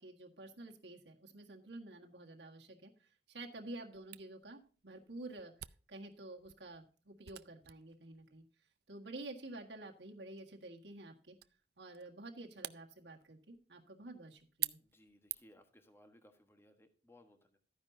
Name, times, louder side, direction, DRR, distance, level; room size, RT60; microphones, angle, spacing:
voice 1, 0.0-5.5 5.9-8.4 8.9-11.4 11.8-14.8, right 2 dB, 80° right, 1 dB, 1.7 m, -50 dB
Camera, 4.1-15.7, right 16 dB, 65° right, 0.5 m, -49 dB
voice 2, 14.8-17.6, left 1 dB, 15° left, 6 dB, 1.3 m, -64 dB
13.0 x 9.8 x 2.7 m, 0.39 s
head